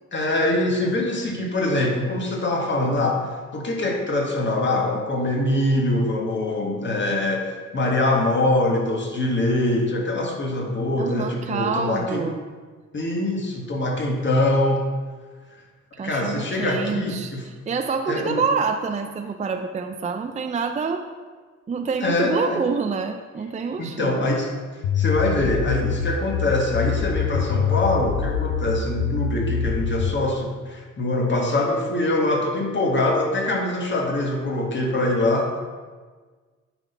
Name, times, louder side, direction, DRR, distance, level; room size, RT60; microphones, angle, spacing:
voice 1, 0.1-3.3 3.5-12.3 12.9-14.9 16.0-17.4 18.1-18.4 22.0-22.6 23.8-24.5 24.9-35.5, left 2 dB, 40° left, 1 dB, 1.6 m, -23 dB
voice 2, 11.0-12.4 15.9-17.3 17.7-21.0 21.7-24.3, right 5 dB, 25° right, 6 dB, 0.5 m, -27 dB
sound 1, 24.8-30.2, left 7 dB, 85° left, 0.6 m, -25 dB
8.8 x 4.2 x 5.5 m, 1.5 s
cardioid pair, 90°, 30 cm